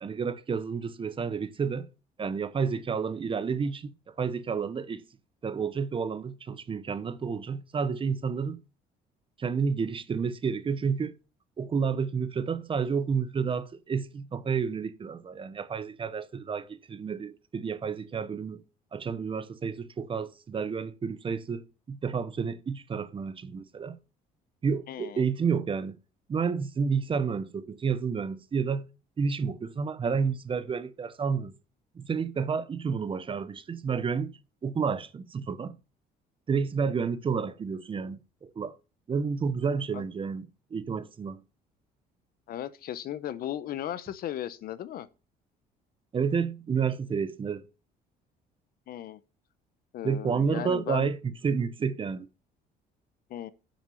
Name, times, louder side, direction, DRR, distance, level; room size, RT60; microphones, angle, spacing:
voice 1, 0.0-1.9 2.2-5.0 5.4-8.6 9.4-11.1 11.6-18.6 18.9-24.0 24.6-26.0 26.3-28.9 29.2-31.5 31.9-35.8 36.5-38.7 39.1-41.4 46.1-47.7 50.0-52.3, right 6 dB, 30° right, 0.8 m, -30 dB
voice 2, 24.9-25.2 39.9-40.0 42.5-45.1 48.9-49.2 49.9-51.1 53.3-53.5, left 11 dB, 60° left, 0.8 m, -36 dB
7.2 x 5.9 x 7.0 m
cardioid pair, 110°, 17 cm